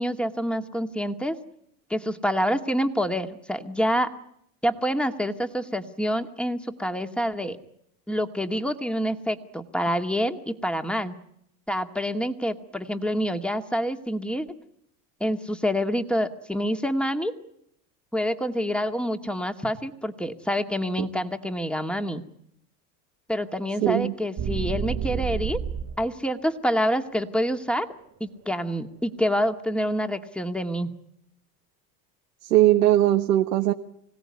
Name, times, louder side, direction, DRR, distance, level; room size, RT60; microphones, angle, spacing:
voice 1, 0.0-1.4 1.9-4.1 4.6-7.6 8.1-11.1 11.7-14.5 15.2-17.3 18.1-22.2 23.3-25.6 26.0-27.9 28.2-30.9, equal, ahead, 7 dB, 2.1 m, -27 dB
voice 2, 23.8-24.2 32.4-33.7, right 14 dB, 90° right, 6 dB, 1.3 m, -20 dB
sound 1, 24.4-26.1, right 7 dB, 35° right, 1.1 m, -29 dB
25.5 x 17.0 x 9.8 m, 0.75 s
hypercardioid pair, 90°, 46 cm